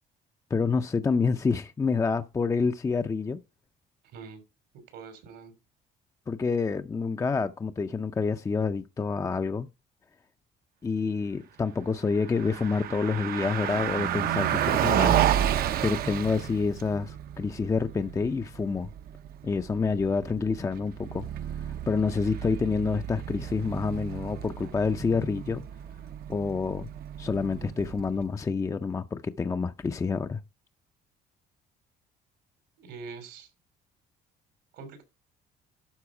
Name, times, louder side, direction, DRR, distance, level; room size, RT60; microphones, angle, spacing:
voice 1, 0.5-3.4 6.3-9.7 10.8-15.2 15.8-18.9 19.4-21.3 21.7-25.6 26.3-26.9 27.2-30.4, left 4 dB, 20° left, 0.5 m, -28 dB
voice 2, 4.9-5.5 32.8-33.5 34.7-35.0, right 5 dB, 85° right, 2.9 m, -43 dB
Car passing by, 12.1-28.2, right 11 dB, 65° right, 0.7 m, -31 dB
12.0 x 4.1 x 4.8 m
cardioid pair, 110°, 17 cm